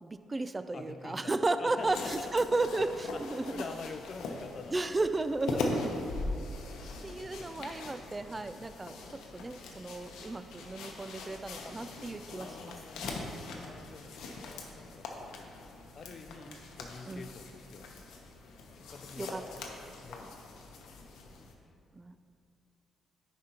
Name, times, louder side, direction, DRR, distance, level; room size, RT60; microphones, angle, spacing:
voice 1, 0.0-3.6 4.7-5.9 7.0-13.2 16.5-16.6 17.1-17.3 19.2-19.4 21.9-22.2, right 2 dB, 20° right, 11 dB, 0.3 m, -34 dB
voice 2, 0.7-2.3 3.1-3.2 3.5-5.0 5.5-6.1 7.2-7.6 12.4-15.5 16.0-18.2 18.8-19.5 20.0-20.6 20.9-21.8, left 4 dB, 45° left, 9 dB, 0.4 m, -47 dB
sound 1, 1.8-21.5, left 2 dB, 85° left, 0.7 m, -41 dB
9.9 x 5.2 x 2.9 m, 2.6 s
cardioid pair, 90°, 0 cm